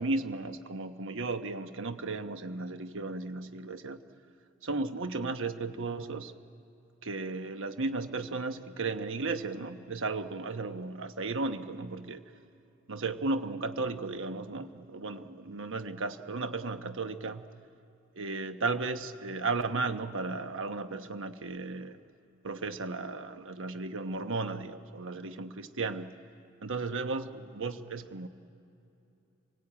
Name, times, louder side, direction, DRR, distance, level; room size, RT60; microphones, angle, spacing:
voice 1, 0.0-4.0 4.6-6.3 7.0-12.2 12.9-17.5 18.1-22.0 22.4-26.2 26.6-28.3, right 3 dB, 65° right, 9 dB, 1.1 m, -35 dB
27.0 x 19.5 x 8.7 m, 2.8 s
head